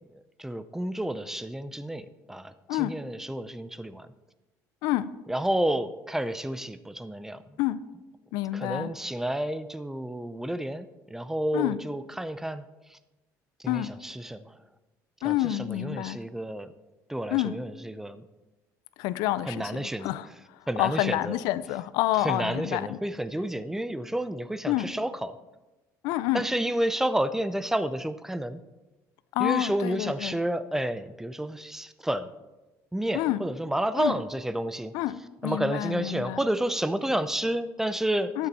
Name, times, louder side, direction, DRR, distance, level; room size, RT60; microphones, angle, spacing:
voice 1, 0.1-4.1 5.3-7.4 8.5-12.6 12.9-13.0 13.6-14.6 15.2-16.7 17.1-18.2 19.4-20.1 20.7-21.3 22.2-25.4 26.3-28.6 29.4-32.3 32.9-34.9 35.4-38.3, right 1 dB, 5° right, 13 dB, 0.5 m, -30 dB
voice 2, 4.8-5.1 7.6-7.8 8.3-8.9 11.5-11.8 13.7-13.9 15.2-16.2 17.3-17.5 19.0-23.0 24.7-24.9 26.0-26.4 29.3-30.4 33.1-33.4 34.0-34.1 34.9-36.4 38.4-38.5, left 15 dB, 85° left, 16 dB, 0.4 m, -28 dB
12.5 x 6.9 x 4.2 m, 1.1 s
cardioid pair, 115°, 7 cm